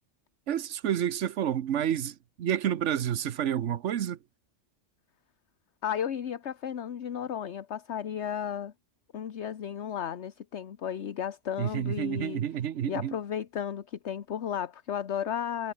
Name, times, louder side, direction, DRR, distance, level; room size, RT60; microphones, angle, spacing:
voice 1, 0.5-4.2 11.6-13.2, right 10 dB, 75° right, 1.2 m, -29 dB
voice 2, 5.8-8.7 9.1-12.4 12.9-15.7, left 9 dB, 65° left, 1.3 m, -34 dB
omnidirectional pair, 1.2 m